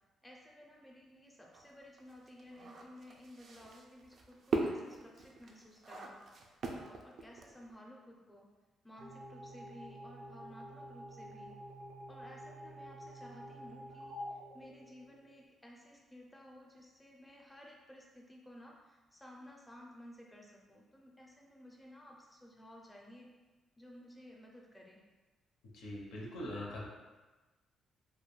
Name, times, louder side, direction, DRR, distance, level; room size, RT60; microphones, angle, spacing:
voice 1, 0.2-8.5 8.8-11.6 12.1-23.3 23.8-25.0, left 1 dB, 10° left, -2 dB, 0.5 m, -55 dB
sound 1, 1.5-7.7, right 3 dB, 55° right, 0.3 m, -40 dB
sound 2, 9.0-15.5, equal, 85° right, 0.7 m, -49 dB
voice 2, 25.7-26.9, left 1 dB, 90° left, -3 dB, 0.6 m, -42 dB
2.3 x 2.2 x 3.0 m, 1.2 s
cardioid pair, 90°, 0 cm